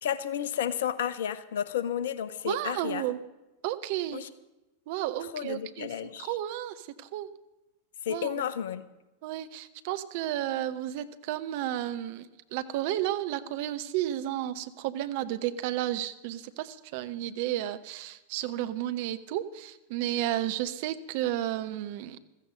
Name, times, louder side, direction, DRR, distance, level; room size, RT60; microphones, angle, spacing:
voice 1, 0.0-3.0 4.1-4.3 5.3-6.3 8.0-8.8, left 9 dB, 60° left, 15 dB, 0.9 m, -32 dB
voice 2, 2.4-3.2 3.6-4.2 4.9-7.3 8.1-8.3 9.2-22.2, right 13 dB, 50° right, 11 dB, 0.9 m, -32 dB
16.0 x 14.5 x 5.3 m, 1.0 s
figure-of-eight pair, 90°, 0 cm